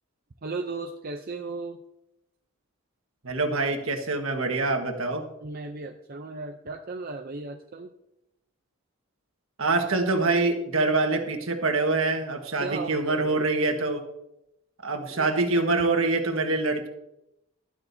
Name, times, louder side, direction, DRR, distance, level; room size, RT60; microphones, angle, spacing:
voice 1, 0.4-1.8 5.4-7.9 12.6-13.6 15.1-15.3, right 3 dB, 40° right, 4 dB, 0.6 m, -36 dB
voice 2, 3.2-5.2 9.6-14.0 14.8-16.9, right 3 dB, 65° right, 5 dB, 1.5 m, -25 dB
12.5 x 12.0 x 2.7 m, 0.86 s
head